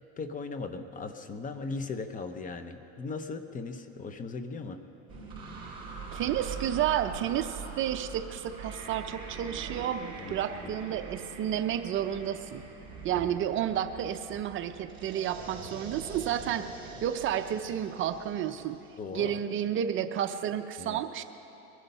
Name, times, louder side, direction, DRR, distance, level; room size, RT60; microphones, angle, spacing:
voice 1, 0.2-4.8 10.2-10.7 13.2-13.4 19.0-19.4 20.8-21.0, left 4 dB, 25° left, 8 dB, 0.9 m, -38 dB
sound 1, 5.1-19.6, right 4 dB, 15° right, 4.2 m, -44 dB
voice 2, 6.1-12.6 13.0-16.7 17.0-18.8 19.1-21.2, right 10 dB, 40° right, 9 dB, 0.6 m, -31 dB
22.5 x 11.0 x 5.6 m, 2.9 s
supercardioid pair, 130°, 31 cm